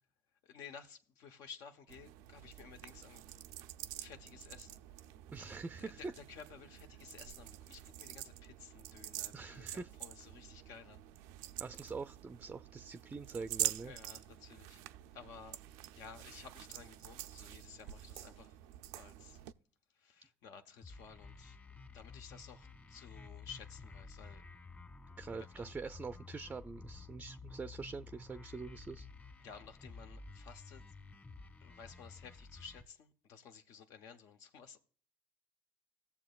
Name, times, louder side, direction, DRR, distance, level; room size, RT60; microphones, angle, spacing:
voice 1, 0.4-3.4 4.0-4.8 5.8-11.0 13.8-14.8 15.1-15.6 15.9-18.5 18.9-19.4 19.9-21.6 21.9-24.4 25.4-25.7 29.4-30.8 31.6-34.8, left 6 dB, 70° left, 0.8 m, -54 dB
sound 1, 1.9-19.5, right 14 dB, 85° right, 0.4 m, -46 dB
voice 2, 5.3-6.0 9.3-9.9 11.6-13.9 25.2-29.1, right 4 dB, 20° right, 0.4 m, -45 dB
sound 2, 20.8-32.8, left 4 dB, 30° left, 1.8 m, -52 dB
16.5 x 7.0 x 2.3 m
supercardioid pair, 85°, 6 cm